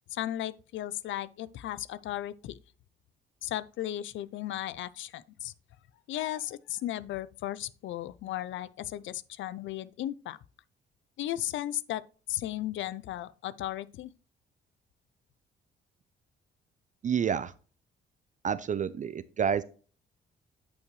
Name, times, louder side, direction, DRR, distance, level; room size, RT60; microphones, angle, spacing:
voice 1, 0.1-2.6 3.4-5.5 6.1-10.4 11.2-12.0 12.3-14.1, left 13 dB, 75° left, 0.5 m, -35 dB
voice 2, 17.0-17.5 18.4-19.6, right 7 dB, 40° right, 0.4 m, -29 dB
9.1 x 5.6 x 3.1 m
cardioid pair, 90°, 20 cm